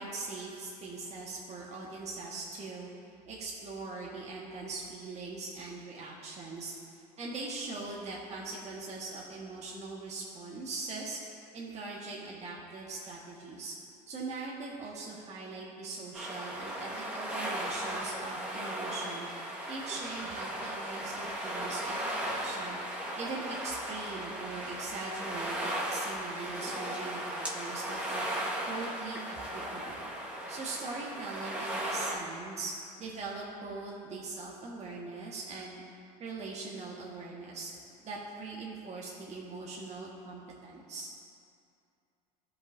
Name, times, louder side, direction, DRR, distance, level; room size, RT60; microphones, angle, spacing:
voice 1, 0.0-2.9 3.3-6.7 7.2-11.2 11.5-13.7 14.1-19.3 19.7-22.8 23.2-28.3 28.7-30.1 30.5-32.7 33.0-35.8 36.2-37.7 38.0-41.1, right 3 dB, 35° right, -5 dB, 1.6 m, -41 dB
sound 1, 16.1-32.2, right 1 dB, 5° right, 1.7 m, -36 dB
15.5 x 5.6 x 2.7 m, 2.5 s
hypercardioid pair, 75°, 20 cm